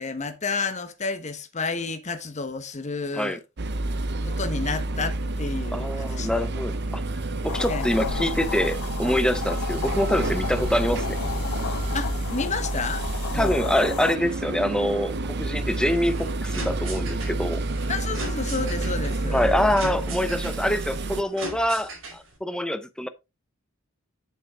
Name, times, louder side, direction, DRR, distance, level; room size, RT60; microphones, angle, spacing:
voice 1, 0.0-3.4 4.3-6.4 7.7-7.9 11.9-13.0 13.3-13.6 17.9-19.4, left 4 dB, 35° left, 1.1 m, -31 dB
sound 1, 3.6-21.2, right 2 dB, 55° right, 0.8 m, -29 dB
voice 2, 5.7-7.0 7.4-11.2 13.3-17.6 19.3-23.1, equal, 5° left, 0.7 m, -25 dB
sound 2, 7.5-14.2, left 8 dB, 70° left, 0.3 m, -33 dB
sound 3, 15.9-22.4, right 2 dB, 75° right, 5.0 m, -39 dB
8.1 x 6.7 x 3.5 m
head